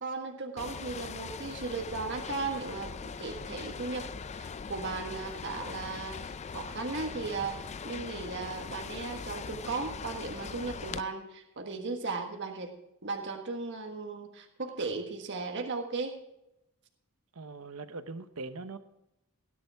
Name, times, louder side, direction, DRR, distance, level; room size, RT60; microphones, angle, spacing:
voice 1, 0.0-4.1 4.3-12.7 13.0-16.2, right 4 dB, 55° right, 3 dB, 1.6 m, -36 dB
sound 1, 0.6-11.0, left 5 dB, 30° left, 0.4 m, -41 dB
voice 2, 17.4-18.8, right 3 dB, 75° right, 11 dB, 0.9 m, -41 dB
17.0 x 10.5 x 3.5 m, 0.87 s
head